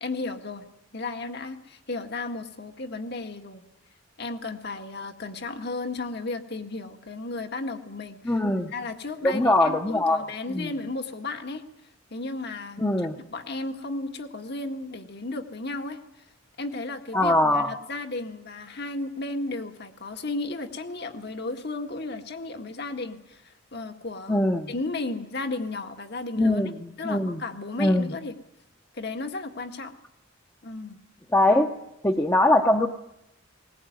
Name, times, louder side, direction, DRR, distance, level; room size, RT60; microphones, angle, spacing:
voice 1, 0.0-0.6 0.9-3.6 4.2-11.6 12.1-12.9 13.3-16.0 16.6-26.6 27.0-28.3 28.9-30.0 30.6-31.0, left 3 dB, 60° left, 6 dB, 1.8 m, -34 dB
voice 2, 8.2-8.7 9.2-10.2 10.5-10.7 12.8-13.2 17.1-17.7 24.3-24.7 26.4-27.4 27.8-28.1 31.3-31.7 32.0-32.9, left 1 dB, 15° left, 2 dB, 0.9 m, -22 dB
20.5 x 19.5 x 9.5 m, 0.85 s
head